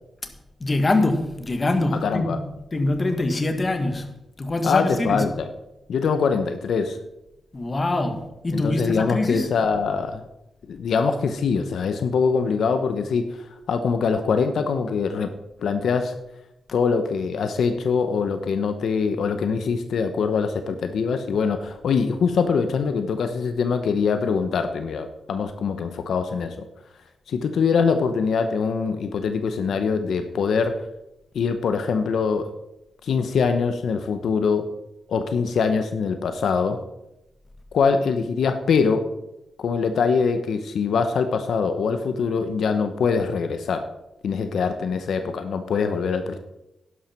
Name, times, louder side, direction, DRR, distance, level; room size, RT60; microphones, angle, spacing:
voice 1, 0.6-2.4 2.7-4.1 4.4-5.2 7.5-9.5, left 2 dB, 30° left, 6 dB, 1.6 m, -24 dB
voice 2, 1.9-2.4 4.6-5.5 5.9-7.0 8.5-10.2 10.7-15.3 15.6-16.1 16.7-26.7 27.3-30.9 31.3-32.5 33.0-34.7 35.1-36.8 37.7-39.1 39.6-43.8 44.2-46.4, left 5 dB, 75° left, 8 dB, 0.9 m, -23 dB
11.5 x 11.0 x 4.5 m, 0.92 s
cardioid pair, 105°, 0 cm